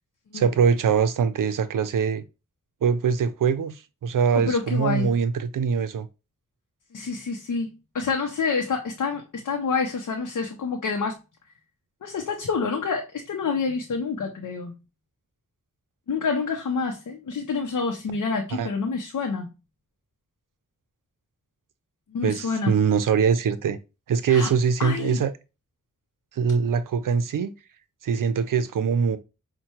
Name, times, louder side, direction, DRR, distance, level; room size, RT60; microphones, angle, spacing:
voice 1, 0.3-2.2 2.8-3.7 4.0-6.1 18.5-18.7 22.2-23.8 24.1-25.3 26.4-27.5 28.0-29.2, right 6 dB, 90° right, 0.5 m, -23 dB
voice 2, 4.4-5.1 6.9-11.2 12.0-14.8 16.1-19.5 22.1-22.8 24.3-24.5 24.8-25.2, left 4 dB, 75° left, 0.6 m, -28 dB
5.4 x 2.2 x 2.8 m
cardioid pair, 60°, 31 cm